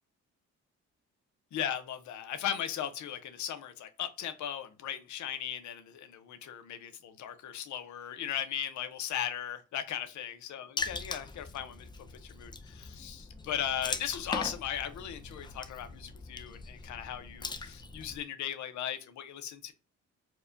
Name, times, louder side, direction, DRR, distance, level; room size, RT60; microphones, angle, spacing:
voice 1, 1.5-19.7, left 10 dB, 70° left, 0.7 m, -37 dB
Water / Splash splatter, 10.8-18.2, left 3 dB, 15° left, 0.4 m, -41 dB
4.6 x 2.2 x 2.6 m
cardioid pair, 90°, 30 cm